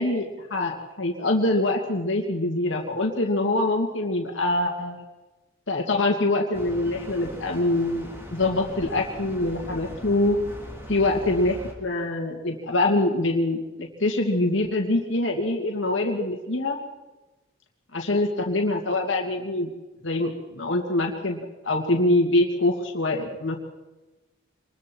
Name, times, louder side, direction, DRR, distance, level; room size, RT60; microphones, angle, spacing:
voice 1, 0.0-5.0 5.7-10.4 10.9-16.8 17.9-19.7 20.0-21.4 21.6-23.6, left 2 dB, 70° left, 1 dB, 2.5 m, -24 dB
sound 1, 6.5-11.7, equal, 15° right, 4.0 m, -40 dB
26.0 x 22.0 x 4.6 m, 1.1 s
head